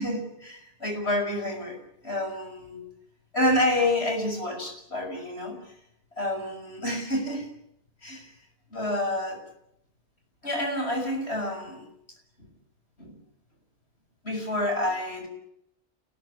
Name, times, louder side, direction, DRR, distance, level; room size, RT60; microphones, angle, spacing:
voice 1, 0.0-1.8 2.0-2.8 3.3-5.6 6.2-7.5 8.0-8.3 8.7-9.4 10.4-11.8 13.0-13.1 14.2-15.3, left 1 dB, 60° left, 4 dB, 6.9 m, -28 dB
28.5 x 19.5 x 10.0 m, 0.80 s
omnidirectional pair, 1.2 m